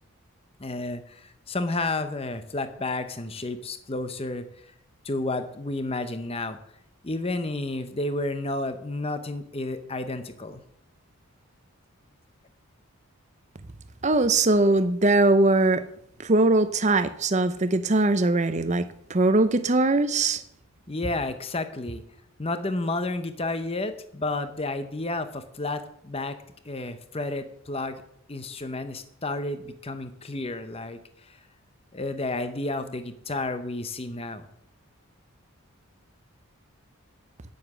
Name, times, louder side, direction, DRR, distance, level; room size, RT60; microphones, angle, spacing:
voice 1, 0.6-4.4 5.0-6.6 7.0-10.6 20.9-22.0 22.4-26.3 26.6-28.0 28.3-31.4 31.9-34.5, left 2 dB, 25° left, 0.8 m, -31 dB
voice 2, 14.0-15.8 16.2-20.4, right 2 dB, 30° right, 0.6 m, -21 dB
9.7 x 7.8 x 6.2 m
head